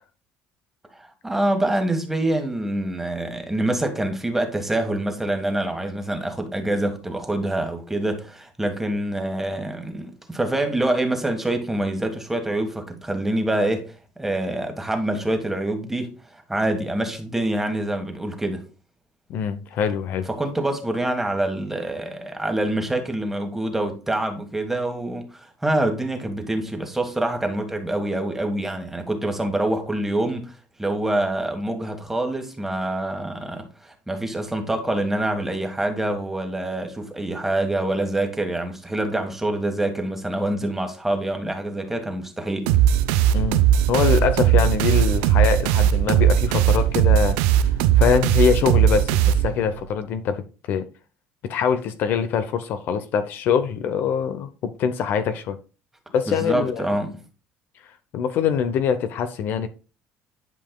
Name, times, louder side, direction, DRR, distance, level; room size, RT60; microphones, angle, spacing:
voice 1, 0.9-13.9 14.2-16.1 16.5-18.6 20.3-30.5 30.8-42.7 56.3-57.2, right 1 dB, 10° right, 1.5 m, -26 dB
voice 2, 19.3-20.3 43.3-47.4 48.0-50.9 51.4-55.6 56.1-56.9 58.1-59.7, left 7 dB, 60° left, 0.7 m, -23 dB
sound 1, 42.7-49.8, right 10 dB, 90° right, 0.5 m, -18 dB
10.5 x 5.3 x 2.3 m
cardioid pair, 115°, 4 cm